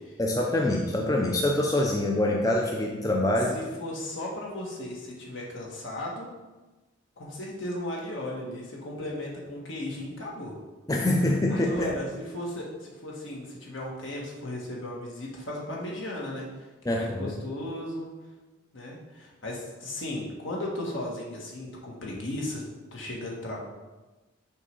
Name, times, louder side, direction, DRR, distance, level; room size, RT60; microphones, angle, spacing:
voice 1, 0.2-3.6 10.9-11.9 16.9-17.3, left 1 dB, 15° left, 0 dB, 0.5 m, -25 dB
voice 2, 3.5-6.3 7.2-10.6 11.5-12.1 12.3-16.5 16.9-18.1 18.7-22.6 22.9-23.6, left 1 dB, 70° left, -3 dB, 1.5 m, -35 dB
6.3 x 3.2 x 5.3 m, 1.2 s
head